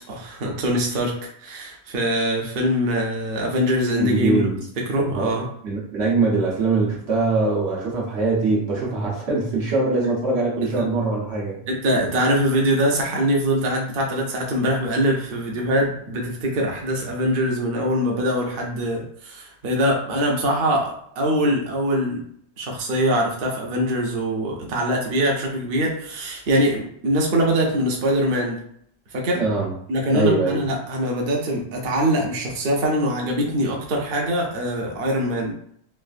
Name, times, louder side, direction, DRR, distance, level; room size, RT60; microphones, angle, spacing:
voice 1, 0.1-4.5 4.9-5.5 10.6-10.9 11.7-22.2 22.6-28.6 29.1-29.4 29.9-35.5, equal, 60° right, 0 dB, 0.8 m, -23 dB
voice 2, 4.0-4.6 5.0-5.3 5.6-11.6 29.3-29.7 30.1-30.6, right 3 dB, 85° right, -4 dB, 1.2 m, -22 dB
3.2 x 2.4 x 2.4 m, 0.67 s
omnidirectional pair, 1.1 m